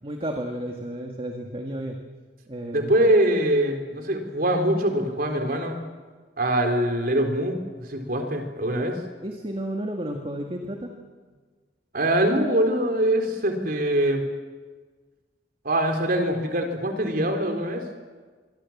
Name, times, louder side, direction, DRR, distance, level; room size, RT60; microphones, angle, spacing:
voice 1, 0.0-2.0 2.5-3.0 9.2-10.9, right 1 dB, 35° right, 3 dB, 2.1 m, -32 dB
voice 2, 2.7-5.8 6.4-9.0 11.9-14.2 15.6-17.8, right 1 dB, 55° right, 4 dB, 3.9 m, -23 dB
26.5 x 23.5 x 7.4 m, 1.4 s
head